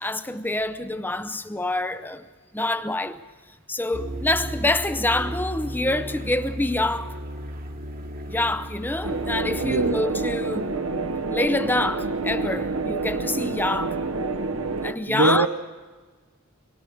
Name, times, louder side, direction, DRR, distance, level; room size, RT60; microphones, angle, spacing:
voice 1, 0.0-2.2 2.5-3.2 3.7-7.2 8.3-10.7 11.3-14.0 14.8-15.5, left 2 dB, 10° left, 0.6 m, -26 dB
sound 1, 3.9-9.9, equal, 45° right, 1.3 m, -35 dB
sound 2, 9.0-14.9, right 3 dB, 85° right, 1.1 m, -28 dB
voice 2, 9.6-10.2 15.1-15.5, right 3 dB, 70° right, 0.7 m, -22 dB
25.0 x 22.5 x 5.0 m
head